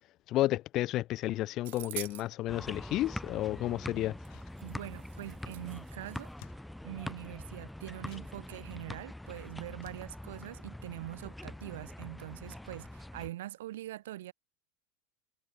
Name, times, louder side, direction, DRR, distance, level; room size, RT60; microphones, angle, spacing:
voice 1, 0.3-4.2, left 15 dB, 35° left, 0.4 m, -31 dB
sound 1, 1.6-2.3 4.2-4.3 4.6-6.3, right 18 dB, 70° right, 0.5 m, -45 dB
sound 2, 2.5-13.3, left 1 dB, ahead, 0.8 m, -44 dB
sound 3, 4.1-5.2 5.5-5.6 5.8-7.4 7.8-11.6 11.8-11.9, left 31 dB, 55° left, 7.5 m, -62 dB
voice 2, 4.6-6.3 6.8-14.3, right 14 dB, 85° right, 3.1 m, -43 dB
supercardioid pair, 165°, 0 cm